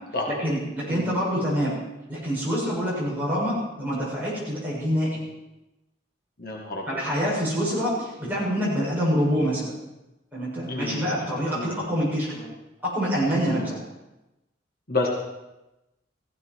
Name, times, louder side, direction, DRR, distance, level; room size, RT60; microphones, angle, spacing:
voice 1, 0.3-1.7 2.1-5.2 6.9-9.7 10.3-12.5 12.8-13.8, equal, 10° right, -8 dB, 7.2 m, -26 dB
voice 2, 0.9-1.2 6.4-7.0 10.6-11.9 13.5-13.7 14.9-15.1, left 2 dB, 50° left, -1 dB, 2.0 m, -31 dB
16.0 x 16.0 x 4.8 m, 0.97 s
head